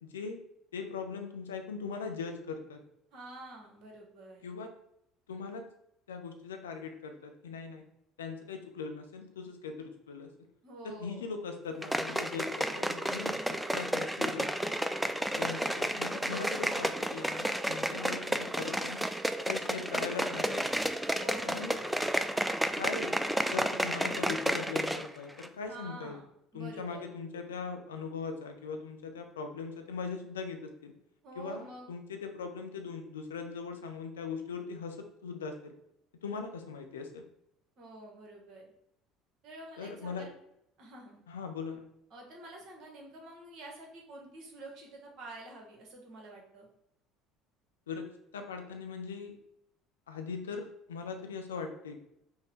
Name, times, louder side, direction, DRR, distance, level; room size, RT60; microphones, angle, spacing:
voice 1, 0.0-0.4 0.7-2.8 4.4-4.7 5.3-5.6 6.1-7.8 8.2-10.3 10.8-14.8 15.3-19.0 19.5-20.8 21.4-21.8 22.8-23.2 23.5-26.2 26.5-30.9 31.4-35.7 36.2-37.2 39.8-40.3 41.3-41.9 47.9-49.3 50.1-52.0, left 5 dB, 75° left, 6 dB, 0.5 m, -40 dB
voice 2, 3.1-4.4 10.6-11.3 15.4-16.0 21.1-22.2 25.7-26.2 26.5-27.1 31.2-31.9 37.8-38.7 39.4-40.3 40.8-41.2 42.1-46.7, right 2 dB, 45° right, 0 dB, 1.3 m, -48 dB
sound 1, 11.8-25.1 25.4-25.5, right 1 dB, 5° right, 0.3 m, -32 dB
5.4 x 2.2 x 4.4 m, 0.77 s
figure-of-eight pair, 60°, 0 cm